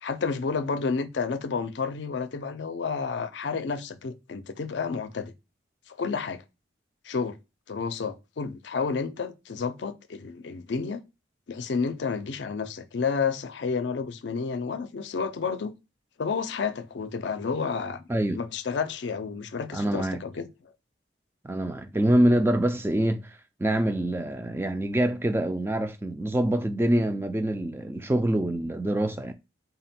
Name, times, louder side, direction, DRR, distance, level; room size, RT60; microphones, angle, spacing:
voice 1, 0.0-5.3 5.9-6.4 7.0-7.4 7.7-11.0 11.5-15.8 16.2-20.5, left 5 dB, 70° left, 0.5 m, -30 dB
voice 2, 18.1-18.4 19.7-20.2 21.4-29.3, right 1 dB, 15° right, 0.3 m, -25 dB
3.8 x 2.2 x 4.2 m
head